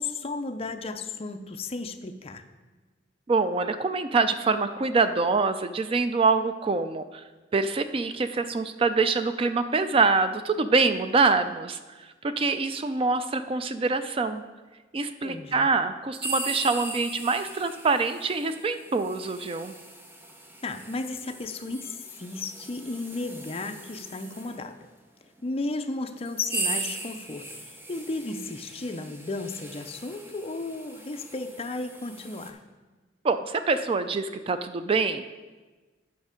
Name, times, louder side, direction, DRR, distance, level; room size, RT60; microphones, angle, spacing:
voice 1, 0.0-2.4 15.2-15.7 20.6-24.8 25.4-32.6, left 3 dB, 35° left, 8 dB, 0.5 m, -34 dB
voice 2, 3.3-7.2 7.5-11.8 12.4-14.4 14.9-19.7 33.2-35.2, right 4 dB, 30° right, 10 dB, 0.4 m, -25 dB
sound 1, 16.2-24.6 25.4-25.5 26.1-32.5, right 2 dB, 10° right, 0.8 m, -39 dB
9.6 x 6.3 x 5.1 m, 1.3 s
head